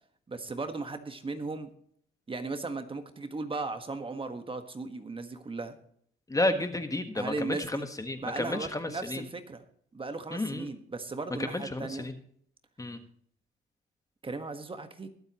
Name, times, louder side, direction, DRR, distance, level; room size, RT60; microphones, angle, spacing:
voice 1, 0.3-1.7 2.3-5.8 7.1-7.9 8.2-9.6 9.9-12.1 14.2-15.1, right 3 dB, 25° right, 8 dB, 1.5 m, -37 dB
voice 2, 6.3-9.2 10.3-10.7 11.5-12.1 12.8-13.0, left 2 dB, 15° left, 8 dB, 1.4 m, -32 dB
22.0 x 8.0 x 3.0 m, 0.63 s
cardioid pair, 90°, 20 cm